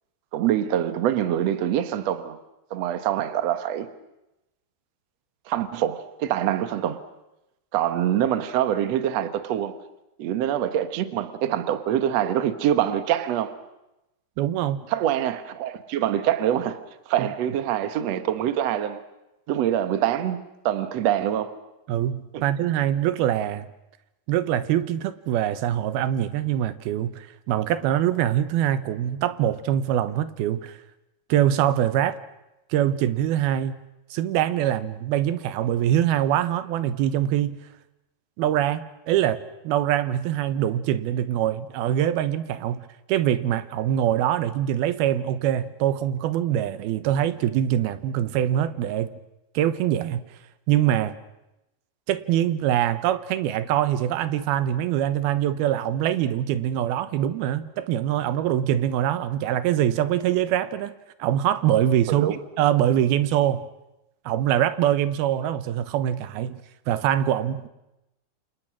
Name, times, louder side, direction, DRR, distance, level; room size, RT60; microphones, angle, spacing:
voice 1, 0.3-2.4 2.7-3.9 5.5-7.0 7.7-9.8 10.2-13.6 14.9-16.8 17.1-19.0 19.5-20.4 20.7-21.5 22.3-22.4 62.1-62.4, right 11 dB, 60° right, 1.9 m, -25 dB
voice 2, 14.4-14.9 17.2-17.3 21.9-23.7 24.3-30.8 31.3-32.2 32.7-33.8 34.1-37.6 38.4-49.2 49.5-50.2 50.7-51.2 52.1-60.9 61.2-63.7 64.3-67.7, right 11 dB, 75° right, 2.8 m, -24 dB
28.0 x 28.0 x 6.2 m
omnidirectional pair, 4.6 m